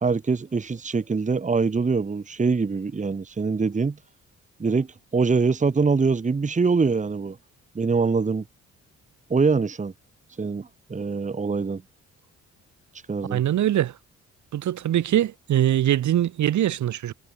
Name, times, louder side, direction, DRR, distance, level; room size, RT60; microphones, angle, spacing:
voice 1, 0.0-4.0 4.6-7.4 7.7-8.4 9.3-9.9 10.4-11.8 13.1-13.4, right 4 dB, 25° right, 1.6 m, -24 dB
voice 2, 13.3-13.9 14.5-17.1, right 12 dB, 70° right, 2.8 m, -22 dB
cardioid pair, 90°, 30 cm